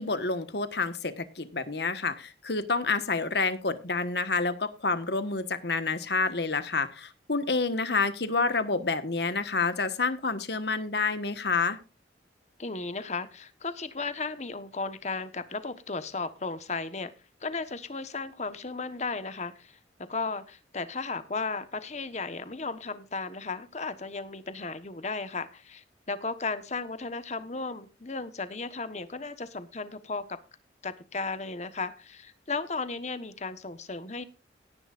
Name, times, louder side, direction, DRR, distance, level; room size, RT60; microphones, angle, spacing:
voice 1, 0.0-11.8, left 4 dB, 60° left, 1.3 m, -28 dB
voice 2, 12.6-17.1 17.4-30.4 30.8-34.2, left 4 dB, 40° left, 1.2 m, -35 dB
17.5 x 10.5 x 2.5 m
head